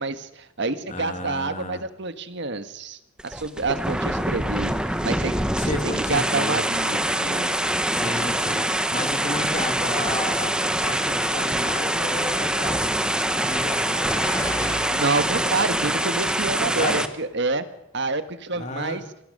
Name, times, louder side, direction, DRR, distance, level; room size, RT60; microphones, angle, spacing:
voice 1, 0.0-7.5 9.2-9.3 14.9-17.6 17.9-19.0, right 3 dB, 60° right, 11 dB, 1.6 m, -28 dB
voice 2, 0.9-1.8 5.6-6.6 7.9-8.6 8.9-14.1 16.6-17.0 18.5-19.0, left 2 dB, 35° left, 6 dB, 2.6 m, -33 dB
sound 1, 3.2-17.1, right 1 dB, 5° right, 1.2 m, -24 dB
Car passing by, 11.7-17.2, left 1 dB, 15° left, 4.7 m, -38 dB
26.0 x 18.5 x 6.7 m, 0.76 s
head